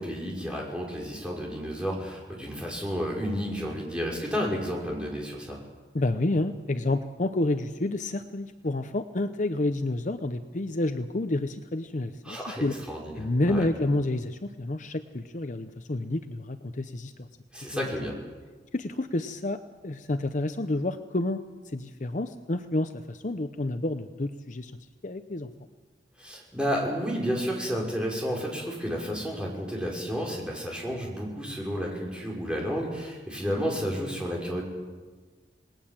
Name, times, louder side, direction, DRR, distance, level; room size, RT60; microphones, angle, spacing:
voice 1, 0.0-5.6 12.2-13.7 17.5-18.1 26.2-34.6, equal, 5° right, -2 dB, 5.6 m, -31 dB
voice 2, 5.9-12.8 13.2-17.3 18.7-21.4 21.7-24.7 25.0-25.5, left 2 dB, 45° left, 9 dB, 0.8 m, -29 dB
28.0 x 19.5 x 7.4 m, 1.4 s
head